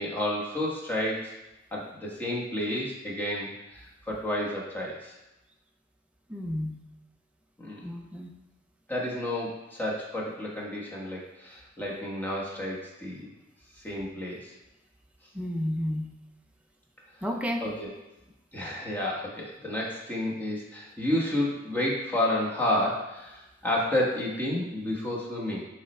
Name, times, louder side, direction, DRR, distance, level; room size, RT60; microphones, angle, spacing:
voice 1, 0.0-1.3 1.7-5.2 7.6-7.9 8.9-13.3 13.8-14.5 17.6-17.9 18.5-25.6, left 1 dB, 10° left, -4 dB, 1.3 m, -31 dB
voice 2, 6.3-6.8 7.8-8.3 15.3-16.1 17.2-17.6, equal, 5° right, 1 dB, 0.6 m, -31 dB
7.1 x 3.3 x 4.3 m, 0.99 s
head